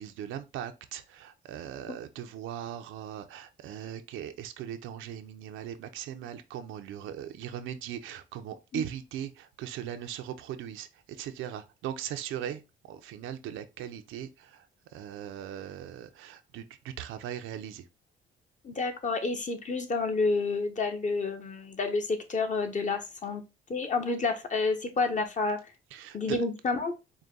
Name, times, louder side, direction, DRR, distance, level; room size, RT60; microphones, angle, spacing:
voice 1, 0.0-17.9 25.9-26.4, right 10 dB, 85° right, 0.6 m, -39 dB
voice 2, 18.6-23.4 23.7-25.6 26.1-26.9, left 3 dB, 40° left, 1.0 m, -29 dB
4.9 x 2.2 x 3.8 m
cardioid pair, 90°, 20 cm